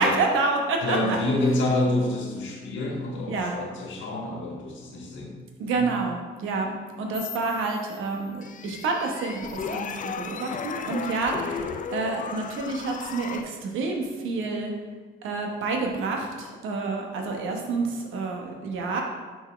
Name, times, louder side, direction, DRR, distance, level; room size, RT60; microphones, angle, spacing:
voice 1, 0.0-1.2 3.3-3.5 5.6-6.7 7.0-14.7 15.2-19.0, right 3 dB, 85° right, 2 dB, 1.1 m, -28 dB
voice 2, 0.8-5.3 5.8-5.9, left 2 dB, 70° left, 0 dB, 1.4 m, -27 dB
sound 1, 7.1-8.0 8.4-13.4, left 6 dB, 40° left, 0.4 m, -35 dB
6.0 x 5.4 x 3.4 m, 1.5 s
cardioid pair, 90°, 20 cm